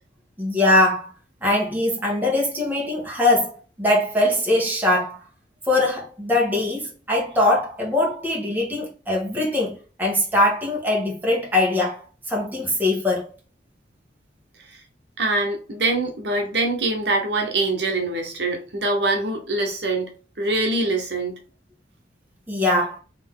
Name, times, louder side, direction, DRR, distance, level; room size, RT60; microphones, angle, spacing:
voice 1, 0.4-1.1 1.4-3.5 3.8-5.2 5.7-12.0 12.3-13.3 22.5-23.0, left 1 dB, 10° right, 1.4 m, -21 dB
voice 2, 15.2-20.1 20.4-21.3, right 2 dB, 70° right, 1.1 m, -24 dB
4.2 x 3.1 x 3.7 m
head